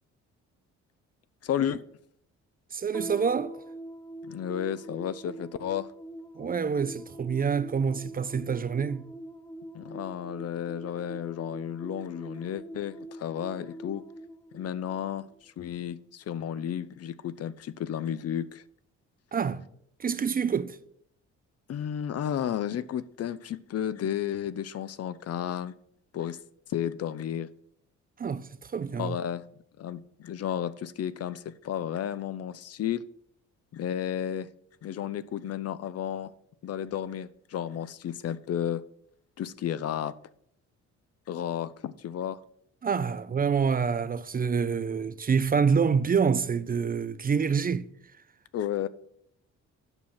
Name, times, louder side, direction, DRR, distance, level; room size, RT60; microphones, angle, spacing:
voice 1, 1.4-1.8 4.2-5.9 9.7-14.0 14.5-18.6 21.7-25.7 26.1-26.4 26.7-27.5 28.9-29.5 29.8-33.0 33.7-34.5 34.8-36.3 36.6-38.8 39.4-40.1 41.3-42.4 48.5-48.9, left 10 dB, 55° left, 0.6 m, -32 dB
voice 2, 2.7-3.6 6.4-9.1 19.3-19.6 20.0-20.8 28.2-29.2 42.8-47.9, right 6 dB, 30° right, 0.5 m, -27 dB
sound 1, 2.9-15.4, right 1 dB, 10° left, 1.0 m, -44 dB
9.0 x 5.6 x 6.3 m
cardioid pair, 90°, 30 cm